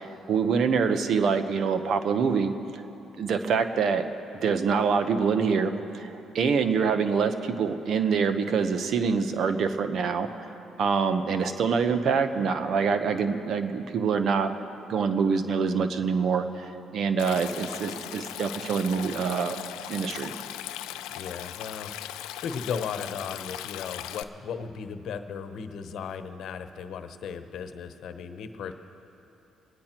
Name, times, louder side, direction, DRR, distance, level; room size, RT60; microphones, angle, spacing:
voice 1, 0.0-2.5 3.2-4.0 4.4-10.5 10.8-14.5 14.9-19.6 19.9-20.3, right 5 dB, 65° right, 9 dB, 1.1 m, -25 dB
Stream, 17.2-24.2, left 13 dB, 90° left, 0.5 m, -38 dB
voice 2, 21.1-28.7, left 6 dB, 70° left, 8 dB, 1.0 m, -36 dB
26.0 x 9.9 x 4.5 m, 2.9 s
cardioid pair, 80°, 0 cm